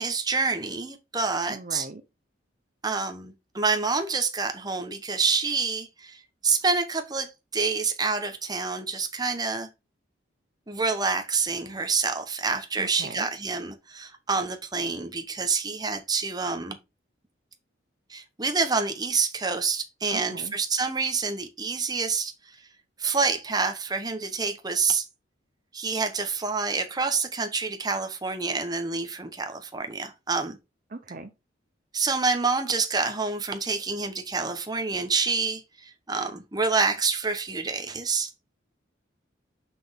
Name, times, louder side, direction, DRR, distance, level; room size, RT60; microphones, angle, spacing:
voice 1, 0.0-1.9 2.8-9.7 10.7-16.8 18.1-22.3 23.0-25.1 25.7-30.6 31.9-38.3, right 4 dB, 20° right, 1.0 m, -27 dB
voice 2, 1.5-2.0 12.8-13.3 20.1-20.5 30.9-31.3, right 3 dB, 45° right, 0.6 m, -39 dB
6.0 x 5.8 x 3.5 m
head